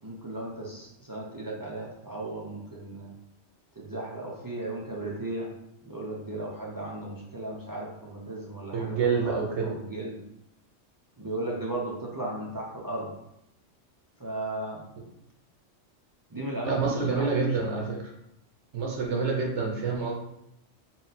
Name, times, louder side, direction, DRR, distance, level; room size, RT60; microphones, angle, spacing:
voice 1, 0.0-3.1 3.8-5.5 5.8-10.2 11.2-13.1 14.2-14.8 16.3-17.7, right 2 dB, 30° right, -4 dB, 0.4 m, -36 dB
voice 2, 8.7-9.7 16.6-18.0 18.7-20.1, right 4 dB, 70° right, -2 dB, 1.0 m, -27 dB
4.0 x 2.1 x 4.0 m, 0.80 s
omnidirectional pair, 1.2 m